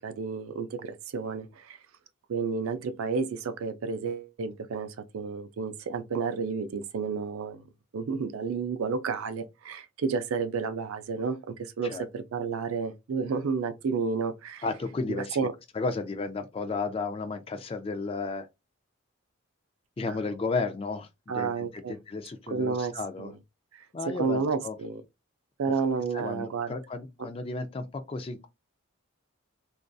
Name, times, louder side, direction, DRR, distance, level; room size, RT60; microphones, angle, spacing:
voice 1, 0.0-1.8 2.3-7.6 7.9-14.6 15.1-15.5 21.3-22.0 22.5-23.3 23.7-23.8 24.1-25.0 25.6-26.7, right 5 dB, 90° right, 0.4 m, -31 dB
voice 2, 14.6-15.4 15.7-18.5 20.0-23.3 23.9-24.8 26.1-28.5, left 3 dB, 25° left, 0.3 m, -33 dB
2.5 x 2.4 x 2.2 m
head